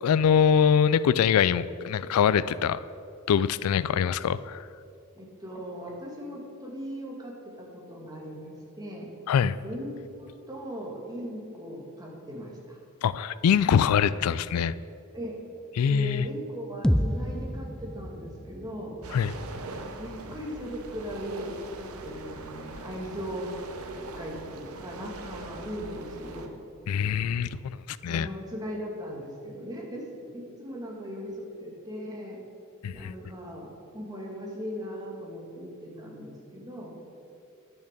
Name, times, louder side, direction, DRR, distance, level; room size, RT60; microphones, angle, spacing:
voice 1, 0.0-2.8 3.3-4.6 9.3-9.6 13.0-14.7 15.8-16.3 19.1-19.3 26.9-28.3 32.8-33.1, left 7 dB, 85° left, 17 dB, 0.3 m, -23 dB
voice 2, 5.2-9.1 9.6-9.9 10.2-12.8 15.1-15.4 15.9-19.0 19.8-23.6 24.0-26.5 28.0-32.4 32.9-36.9, equal, 20° right, -2 dB, 2.0 m, -38 dB
sound 1, 16.8-20.8, equal, 5° left, 0.4 m, -31 dB
sound 2, 19.0-26.5, right 2 dB, 90° right, 1.0 m, -41 dB
11.0 x 6.9 x 6.6 m, 2.6 s
head